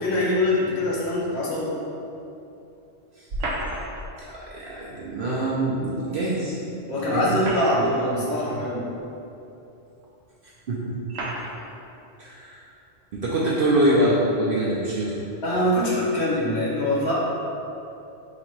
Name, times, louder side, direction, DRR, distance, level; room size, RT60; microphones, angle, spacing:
voice 1, 0.0-1.7 6.9-8.9 15.4-17.1, left 1 dB, 60° left, -5 dB, 1.2 m, -23 dB
sound 1, 3.3-4.1 5.8-5.9 7.2-8.1 9.0-9.1 10.0-10.1 11.1-11.6, right 1 dB, 85° right, 1.0 m, -31 dB
voice 2, 4.4-6.6 7.1-7.3 10.7-10.9 12.2-12.6 13.1-15.3, right 1 dB, 60° right, -6 dB, 0.7 m, -24 dB
4.0 x 2.4 x 4.5 m, 2.8 s
omnidirectional pair, 1.3 m